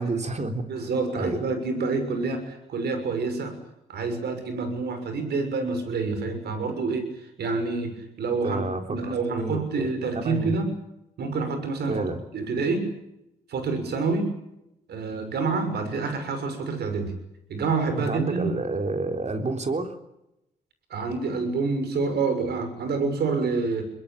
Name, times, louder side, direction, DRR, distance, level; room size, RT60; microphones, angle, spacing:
voice 1, 0.0-0.9 1.2-1.4 8.4-9.9 10.1-10.5 11.9-12.2 17.9-20.0, right 3 dB, 40° right, 6 dB, 3.8 m, -29 dB
voice 2, 0.7-3.6 3.9-7.0 7.4-8.6 8.9-10.7 11.2-12.0 12.3-12.9 13.5-14.3 14.9-17.1 17.5-18.5 20.9-23.9, right 4 dB, 70° right, 8 dB, 6.4 m, -27 dB
23.5 x 21.5 x 8.7 m, 0.86 s
supercardioid pair, 50°, 17 cm